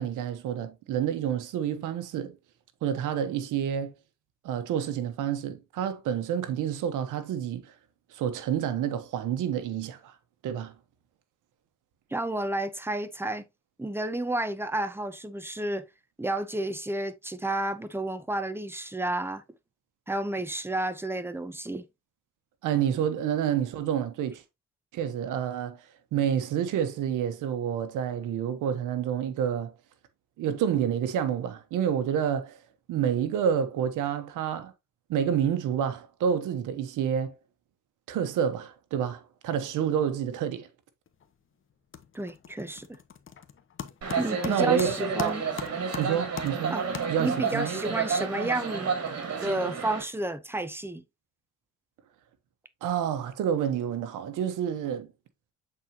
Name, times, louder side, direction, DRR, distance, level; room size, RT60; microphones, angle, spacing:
voice 1, 0.0-2.4 2.8-3.9 4.4-7.7 8.1-10.1 10.4-10.7 22.6-24.4 24.9-29.7 30.4-32.6 32.9-34.7 35.1-37.4 38.1-40.7 44.5-44.9 45.2-45.4 46.0-46.8 47.1-47.7 52.8-55.1, right 9 dB, 85° right, 1.1 m, -28 dB
voice 2, 12.1-13.4 13.8-15.9 16.2-19.4 20.1-21.9 42.1-43.0 44.2-45.4 46.7-46.8 47.2-49.0 49.4-51.0, right 1 dB, 10° right, 0.9 m, -31 dB
sound 1, 41.1-41.4 41.7-47.6, left 8 dB, 45° left, 0.9 m, -41 dB
sound 2, 44.0-50.0, right 5 dB, 55° right, 2.6 m, -31 dB
7.4 x 4.4 x 2.8 m
cardioid pair, 90°, 30 cm